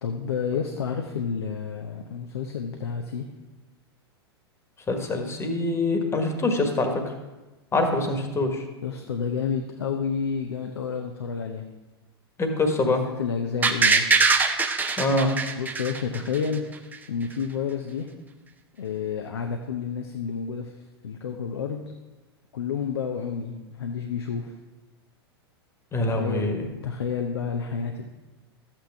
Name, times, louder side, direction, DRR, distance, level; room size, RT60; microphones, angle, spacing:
voice 1, 0.0-3.2 8.8-11.6 12.7-14.1 15.6-16.6 17.1-18.1 18.8-20.7 21.0-21.8 22.5-24.5 26.1-26.5 26.8-28.1, left 6 dB, 70° left, 4 dB, 0.8 m, -30 dB
voice 2, 4.9-6.9 7.7-8.6 12.4-13.0 15.0-15.3 25.9-26.7, left 2 dB, 20° left, 5 dB, 1.5 m, -24 dB
sound 1, 13.6-16.6 16.9-17.0, right 4 dB, 15° right, 0.7 m, -22 dB
12.5 x 8.7 x 3.5 m, 1.1 s
figure-of-eight pair, 100°, 14 cm